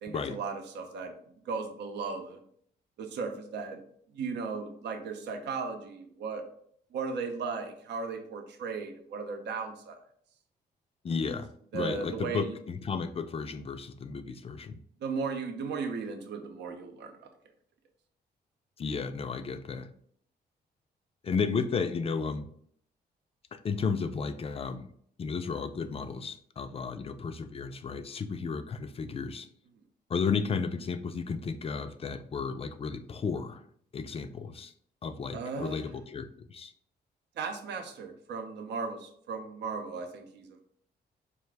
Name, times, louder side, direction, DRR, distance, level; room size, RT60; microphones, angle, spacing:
voice 1, 0.0-1.1 1.5-2.4 3.0-3.8 4.1-6.4 6.9-10.0 11.7-12.5 15.0-17.1 35.3-35.9 37.4-40.6, right 5 dB, 80° right, 5 dB, 0.7 m, -36 dB
voice 2, 11.0-11.5 11.7-14.8 18.8-19.9 21.2-22.5 23.5-24.9 25.2-29.5 30.1-33.6 33.9-34.7 35.0-36.7, left 5 dB, 35° left, 9 dB, 0.4 m, -33 dB
4.7 x 2.5 x 3.3 m, 0.64 s
cardioid pair, 90°, 18 cm